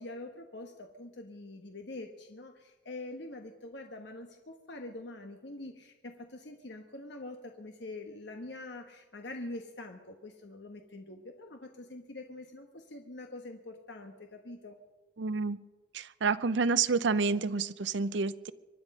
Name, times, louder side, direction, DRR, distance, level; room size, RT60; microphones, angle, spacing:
voice 1, 0.0-14.8, left 2 dB, 65° left, 4 dB, 1.2 m, -45 dB
voice 2, 15.2-15.6 15.9-18.5, right 4 dB, 70° right, 16 dB, 0.6 m, -29 dB
24.0 x 10.5 x 5.4 m, 1.2 s
head